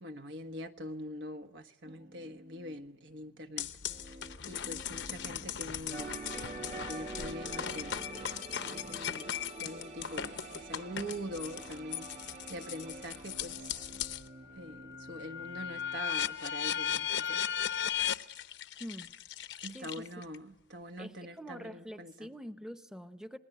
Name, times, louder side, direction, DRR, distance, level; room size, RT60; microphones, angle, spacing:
voice 1, 0.0-3.7 4.5-6.1 6.8-8.3 8.6-12.1 12.5-13.9 14.5-17.4 19.6-22.3, equal, 75° right, 6 dB, 1.5 m, -44 dB
sound 1, 1.8-16.0, right 1 dB, 55° right, 1.1 m, -53 dB
sound 2, 3.6-14.3 14.7-20.4, left 9 dB, 70° left, 0.8 m, -37 dB
sound 3, 5.9-14.6 14.8-15.1, right 3 dB, 40° right, 1.3 m, -46 dB
voice 2, 18.8-19.1 19.7-20.1 21.0-23.4, equal, 5° right, 9 dB, 0.8 m, -45 dB
27.5 x 20.5 x 9.3 m, 1.0 s
head